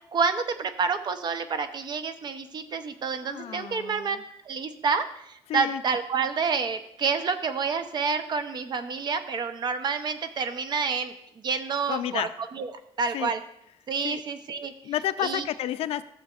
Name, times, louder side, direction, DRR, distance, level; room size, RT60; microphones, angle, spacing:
voice 1, 0.1-4.2 4.5-11.1 11.4-12.3 12.5-12.7 13.0-13.4 13.9-14.7 15.2-15.4, right 5 dB, 45° right, 9 dB, 0.7 m, -28 dB
voice 2, 3.2-4.2 5.5-5.8 11.9-12.3 13.1-13.3 14.0-14.2 14.8-16.0, left 11 dB, 80° left, 12 dB, 0.5 m, -31 dB
14.5 x 7.2 x 2.4 m, 0.77 s
cardioid pair, 135°, 10 cm